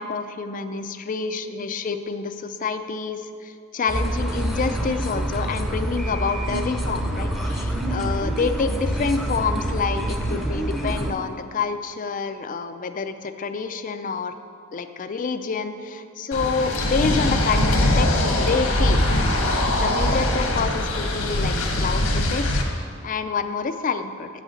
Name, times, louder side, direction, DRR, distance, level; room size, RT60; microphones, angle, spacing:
voice 1, 0.0-14.3 14.7-19.0 19.4-24.4, left 4 dB, 40° left, 9 dB, 0.4 m, -28 dB
sound 1, 3.9-11.1, right 1 dB, ahead, 0.7 m, -26 dB
sound 2, 16.3-22.6, left 1 dB, 80° left, 1.4 m, -22 dB
8.3 x 6.3 x 6.4 m, 2.3 s
head